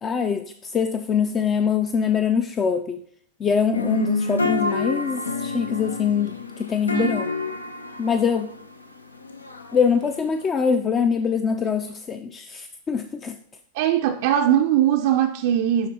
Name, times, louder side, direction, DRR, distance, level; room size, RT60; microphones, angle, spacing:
voice 1, 0.0-3.0 3.4-7.3 8.0-8.5 9.7-13.4, left 6 dB, 25° left, 8 dB, 0.4 m, -23 dB
sound 1, 3.7-10.5, left 3 dB, 80° left, 0.5 m, -29 dB
voice 2, 13.7-15.9, right 10 dB, 50° right, 4 dB, 0.4 m, -20 dB
11.5 x 3.8 x 2.8 m, 0.63 s
figure-of-eight pair, 90°, 0 cm